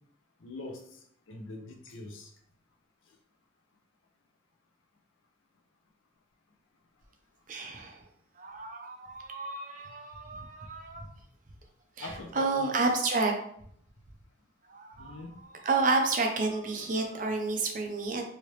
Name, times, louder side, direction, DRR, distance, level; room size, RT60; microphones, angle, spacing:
voice 1, 0.4-2.3 12.0-12.7 15.0-15.4, left 2 dB, 85° left, 3 dB, 0.6 m, -43 dB
voice 2, 7.5-8.0 8.4-11.1 12.0-13.3 14.7-18.2, right 3 dB, 40° right, 3 dB, 0.5 m, -30 dB
3.2 x 2.7 x 3.0 m, 0.68 s
head